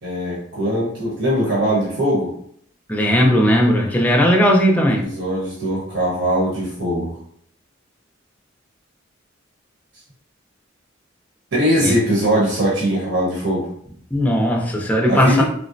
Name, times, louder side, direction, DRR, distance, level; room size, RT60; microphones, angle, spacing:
voice 1, 0.0-2.3 5.0-7.1 11.5-13.7 15.1-15.4, equal, 65° right, -7 dB, 1.0 m, -21 dB
voice 2, 2.9-5.0 11.8-12.0 14.1-15.4, equal, 10° left, 0 dB, 0.4 m, -17 dB
3.6 x 2.0 x 2.5 m, 0.64 s
head